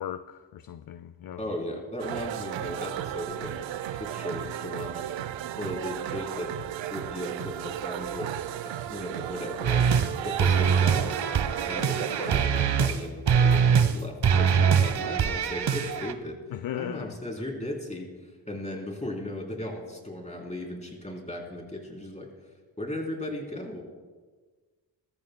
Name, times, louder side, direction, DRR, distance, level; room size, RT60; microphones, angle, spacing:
voice 1, 0.0-1.4 16.5-17.1, left 11 dB, 55° left, 0.5 m, -36 dB
voice 2, 1.4-3.6 3.9-5.3 5.6-6.5 6.9-8.3 8.6-9.9 10.2-11.2 11.7-22.5 22.8-23.8, left 1 dB, 15° left, 3.4 m, -36 dB
sound 1, 2.0-12.5, right 11 dB, 90° right, 0.6 m, -34 dB
sound 2, 9.6-10.1 10.4-13.0 13.3-14.0 14.2-16.1, right 7 dB, 65° right, 0.9 m, -23 dB
21.0 x 13.5 x 2.2 m
cardioid pair, 75°, 44 cm